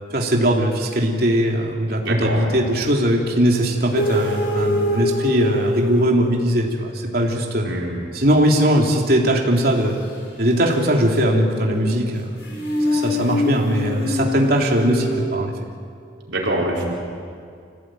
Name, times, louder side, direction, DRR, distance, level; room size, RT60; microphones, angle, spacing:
voice 1, 0.1-7.7 8.1-10.0 10.4-12.3 12.9-15.5, equal, 50° right, 0 dB, 3.1 m, -20 dB
voice 2, 2.0-2.5 7.6-8.0 16.3-16.9, right 1 dB, 70° right, -3 dB, 4.6 m, -24 dB
sound 1, 3.9-6.6 10.1-15.3, left 1 dB, 65° left, 5.8 m, -25 dB
26.5 x 17.0 x 9.2 m, 2.2 s
head